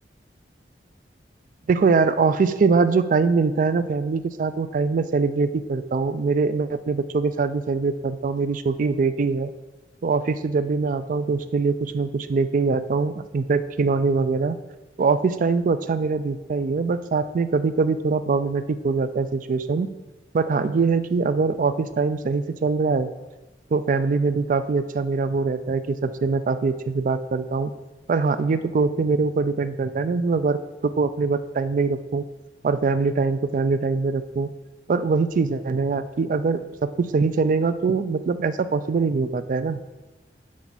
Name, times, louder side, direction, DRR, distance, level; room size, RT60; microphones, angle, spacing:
voice 1, 1.7-9.5 10.0-14.6 15.0-19.9 20.3-23.1 23.7-27.7 28.1-32.2 32.6-34.5 34.9-39.8, right 4 dB, 50° right, 12 dB, 0.3 m, -23 dB
7.4 x 4.6 x 4.0 m, 1.0 s
head